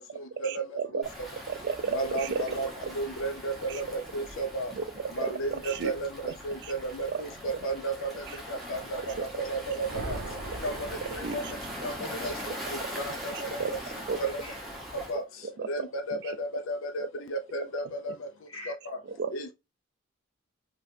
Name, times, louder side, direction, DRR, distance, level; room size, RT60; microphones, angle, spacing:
voice 1, 0.4-1.0 1.5-2.5 3.7-3.8 4.7-5.4 5.6-5.9 6.2-6.3 6.6-6.7 7.1-7.2 7.5-7.7 8.3-8.4 9.0-9.3 10.5-10.6 11.0-11.5 12.5-12.6 13.3-13.7 14.1-14.3 15.1-15.8 16.1-16.4 18.1-18.2 19.2-19.3, right 5 dB, 50° right, 0.3 m, -34 dB
Waves surf, 1.0-15.2, equal, ahead, 0.9 m, -41 dB
voice 2, 1.9-2.7 3.0-4.7 5.2-6.1 6.4-8.1 8.7-10.2 10.6-10.7 11.1-11.4 11.8-12.3 13.2-13.3 14.2-14.3 15.1-15.2 15.7-18.0 19.3-19.5, right 2 dB, 70° left, 0.5 m, -33 dB
sound 1, 9.5-12.1, right 2 dB, 80° right, 0.7 m, -40 dB
voice 3, 14.4-14.8 18.5-19.2, left 1 dB, 25° left, 1.4 m, -48 dB
3.3 x 2.9 x 2.6 m
head